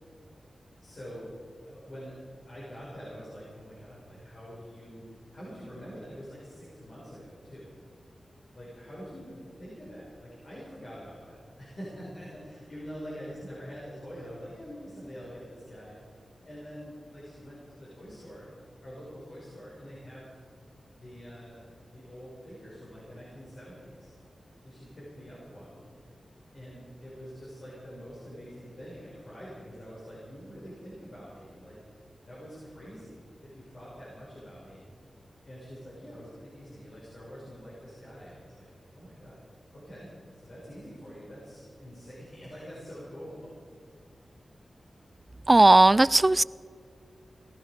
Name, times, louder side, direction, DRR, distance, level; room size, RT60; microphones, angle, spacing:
voice 1, 0.8-1.3 1.7-2.2 2.5-7.7 8.5-16.0 16.5-18.5 18.8-20.3 21.0-24.1 24.6-25.8 26.5-34.8 35.5-38.7 38.9-39.4 39.7-43.5, equal, 55° left, -7 dB, 5.7 m, -45 dB
voice 2, 45.5-46.4, right 2 dB, 30° right, 20 dB, 0.4 m, -17 dB
18.0 x 15.5 x 5.0 m, 2.1 s
cardioid pair, 55°, 0 cm